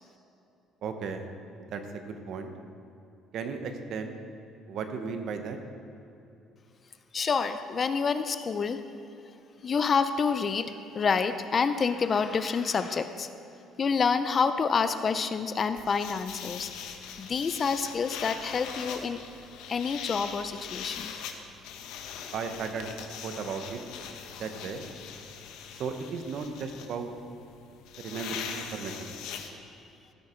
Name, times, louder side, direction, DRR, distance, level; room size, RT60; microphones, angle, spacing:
voice 1, 0.8-1.3 1.7-2.5 3.3-4.2 4.7-5.6 22.3-22.9 23.2-23.8 24.4-24.8 25.8-27.1 28.0-29.1, right 5 dB, 50° right, 6 dB, 1.0 m, -35 dB
voice 2, 7.1-8.8 9.6-13.3 13.8-16.7 17.2-19.2 19.7-21.1 29.7-29.8, left 5 dB, 30° left, 11 dB, 0.4 m, -28 dB
sound 1, 15.8-29.5, left 7 dB, 80° left, 0.9 m, -41 dB
15.0 x 8.1 x 4.4 m, 2.8 s
cardioid pair, 155°, 0 cm